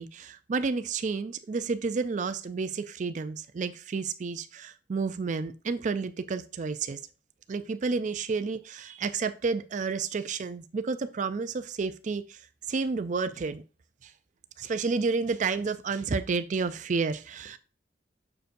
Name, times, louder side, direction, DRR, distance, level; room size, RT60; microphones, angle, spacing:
voice 1, 0.0-7.0 7.5-12.4 12.7-13.6 14.0-14.1 14.6-17.6, right 4 dB, 45° right, 11 dB, 0.4 m, -30 dB
6.8 x 6.5 x 2.6 m, 0.35 s
head